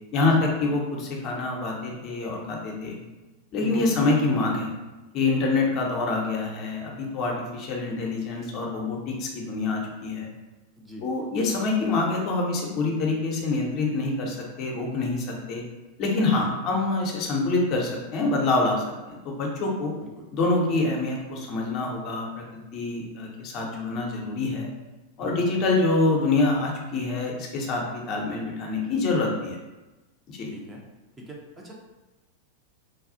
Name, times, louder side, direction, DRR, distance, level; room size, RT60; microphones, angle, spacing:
voice 1, 0.1-3.0 3.5-4.7 5.1-10.3 11.0-15.6 16.0-19.9 20.3-24.7 25.2-29.6 30.3-30.5, left 3 dB, 40° left, 0 dB, 0.6 m, -26 dB
voice 2, 3.6-4.0 5.4-5.7 10.8-11.1 16.3-16.7 20.0-20.3 25.2-25.6 30.5-30.8 31.2-31.4 31.6-31.7, right 1 dB, 10° right, -2 dB, 0.5 m, -41 dB
3.3 x 2.3 x 2.6 m, 1.1 s
figure-of-eight pair, 90°, 0 cm